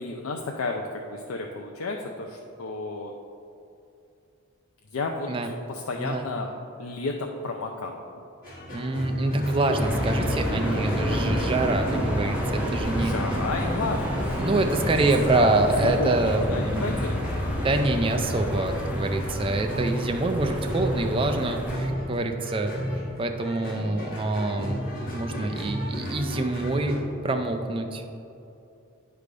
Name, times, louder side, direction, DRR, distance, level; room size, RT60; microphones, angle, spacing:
voice 1, 0.0-3.1 4.9-6.5 6.8-8.0 11.1-11.5 12.9-14.0 15.3-17.2, left 3 dB, 75° left, 1 dB, 0.5 m, -32 dB
sound 1, 8.4-27.0, equal, 45° left, 1.7 m, -33 dB
voice 2, 8.7-13.1 14.4-16.9 17.6-22.8 23.2-24.9 25.1-28.0, right 2 dB, 25° right, 4 dB, 0.4 m, -26 dB
sound 2, 9.7-21.7, equal, 5° right, 0.8 m, -30 dB
9.4 x 3.4 x 5.2 m, 2.7 s
head